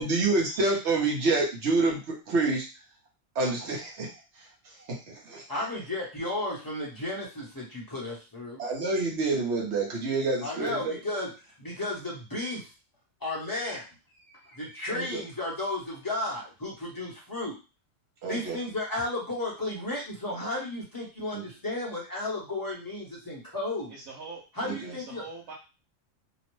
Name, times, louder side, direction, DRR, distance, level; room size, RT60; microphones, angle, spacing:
voice 1, 0.0-2.7 3.3-4.2 4.8-5.4 8.6-11.0 14.9-15.2 18.2-18.6 21.3-21.4 24.6-24.9, right 3 dB, 60° right, -1 dB, 1.1 m, -28 dB
voice 2, 5.5-8.6 10.4-12.7 13.2-13.9 14.2-17.5 18.3-23.9 24.5-25.2, left 2 dB, 20° left, -5 dB, 0.8 m, -34 dB
voice 3, 23.9-24.4 24.9-25.5, right 4 dB, 85° right, -3 dB, 1.1 m, -43 dB
2.9 x 2.1 x 3.0 m, 0.31 s
omnidirectional pair, 1.4 m